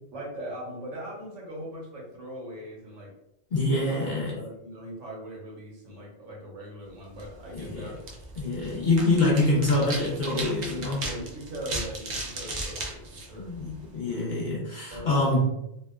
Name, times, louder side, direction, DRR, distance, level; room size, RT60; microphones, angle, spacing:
voice 1, 0.1-3.1 3.8-4.0 4.3-8.0 11.0-13.5 14.9-15.3, equal, 90° right, -3 dB, 1.3 m, -40 dB
voice 2, 3.5-4.4 7.5-7.9 8.4-11.0 13.4-15.5, left 2 dB, 55° left, -5 dB, 0.5 m, -25 dB
sound 1, 7.1-14.0, right 2 dB, 70° right, 0.4 m, -37 dB
2.8 x 2.0 x 2.2 m, 0.82 s
omnidirectional pair, 1.3 m